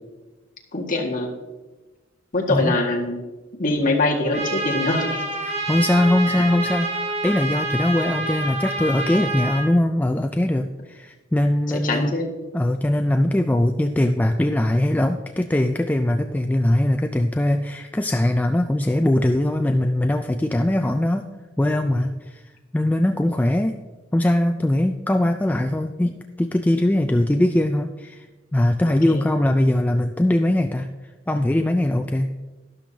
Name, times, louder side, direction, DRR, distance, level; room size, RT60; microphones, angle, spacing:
voice 1, 0.7-1.3 2.3-3.2 3.6-5.3 6.3-6.4 11.8-12.3 28.9-29.2, left 2 dB, 45° left, -1 dB, 1.8 m, -23 dB
Trumpet, 4.3-9.7, right 2 dB, 35° right, 1.4 m, -27 dB
voice 2, 5.4-12.2 12.5-21.3 21.6-22.4 22.7-23.8 24.1-28.3 28.5-30.9 31.3-32.3, left 1 dB, 10° left, 6 dB, 0.3 m, -21 dB
12.0 x 11.5 x 2.8 m, 1.2 s
head